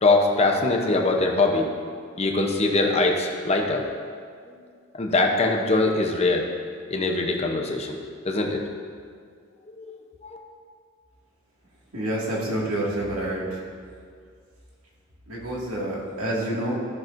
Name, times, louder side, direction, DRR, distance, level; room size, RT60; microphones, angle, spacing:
voice 1, 0.0-1.7 2.2-3.8 4.9-6.5 6.9-8.0 8.2-8.6 9.8-9.9 10.2-10.4, left 2 dB, 30° left, 2 dB, 0.7 m, -22 dB
voice 2, 11.9-13.6 15.3-16.8, right 1 dB, 85° right, -6 dB, 2.0 m, -28 dB
13.0 x 6.0 x 2.6 m, 2.2 s
head